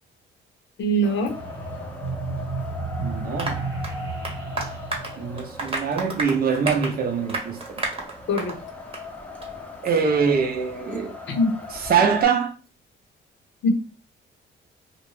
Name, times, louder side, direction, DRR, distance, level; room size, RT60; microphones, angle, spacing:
voice 1, 0.8-1.3 8.3-8.6 11.3-11.6 13.6-13.7, equal, 65° left, 0.7 m, -22 dB
Wind, 1.0-12.2, left 3 dB, 5° left, 0.7 m, -40 dB
sound 1, 1.2-6.2, right 3 dB, 80° right, 1.0 m, -33 dB
voice 2, 3.0-3.6 5.2-7.6 9.8-11.2 11.7-12.5, right 6 dB, 50° right, 0.6 m, -23 dB
Applause, 3.4-8.6 8.9-9.1 9.4-9.5 9.9-10.0, right 2 dB, 25° right, 0.9 m, -32 dB
2.5 x 2.1 x 3.1 m
cardioid pair, 90°, 20 cm